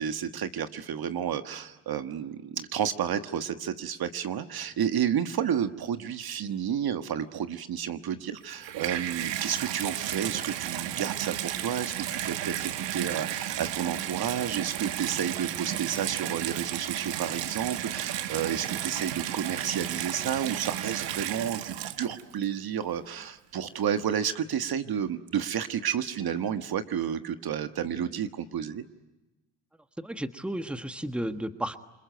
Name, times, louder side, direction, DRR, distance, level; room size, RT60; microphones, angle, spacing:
voice 1, 0.0-28.8, right 9 dB, 55° right, 9 dB, 1.5 m, -31 dB
Water tap faucet / Bathtub (filling or washing), 8.4-22.4 23.2-23.3, right 12 dB, 70° right, 1.4 m, -33 dB
voice 2, 30.0-31.8, right 1 dB, ahead, 9 dB, 1.4 m, -33 dB
29.0 x 21.5 x 9.3 m, 1.0 s
supercardioid pair, 75°, 44 cm